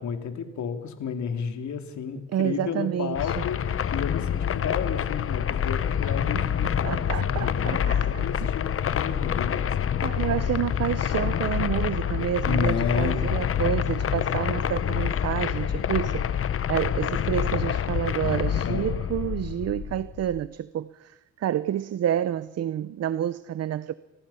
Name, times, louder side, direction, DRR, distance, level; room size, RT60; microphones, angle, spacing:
voice 1, 0.0-10.2 12.5-13.3 18.6-18.9, left 6 dB, 70° left, 3.0 m, -32 dB
voice 2, 2.3-3.4 6.1-6.4 6.8-8.5 10.0-23.9, right 11 dB, 55° right, 0.7 m, -29 dB
sound 1, 3.2-20.5, left 9 dB, 45° left, 1.0 m, -27 dB
29.0 x 19.5 x 5.7 m
cardioid pair, 90°, 30 cm